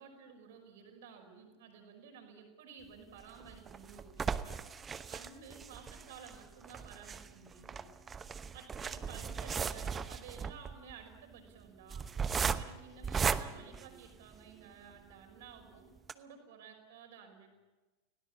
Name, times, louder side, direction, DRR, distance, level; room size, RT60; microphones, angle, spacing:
voice 1, 0.0-4.6 5.1-7.9 8.5-12.1 12.5-17.5, right 6 dB, 55° right, 4 dB, 5.5 m, -53 dB
sound 1, 3.2-14.6 15.1-15.2 15.5-15.6 16.0-16.1, right 6 dB, 20° right, 1.0 m, -37 dB
30.0 x 17.5 x 7.4 m, 1.2 s
figure-of-eight pair, 90°, 0 cm